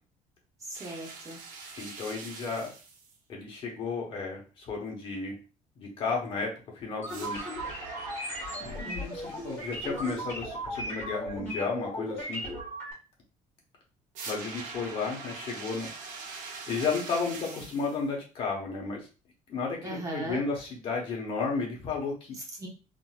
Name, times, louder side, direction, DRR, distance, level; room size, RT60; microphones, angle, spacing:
voice 1, 0.6-1.4 19.8-20.4 22.3-22.7, right 1 dB, 25° right, -1 dB, 0.7 m, -38 dB
sound 1, 0.7-3.2 7.1-10.0 14.1-18.0, right 4 dB, 85° right, 0.8 m, -43 dB
voice 2, 1.8-2.7 3.3-5.3 5.8-7.5 8.6-12.4 14.3-15.9 16.7-19.1 19.5-22.4, left 4 dB, 40° left, 0 dB, 1.1 m, -33 dB
sound 2, 7.0-12.9, equal, 15° left, 1.6 m, -36 dB
3.8 x 2.8 x 2.3 m, 0.33 s
cardioid pair, 180°, 13 cm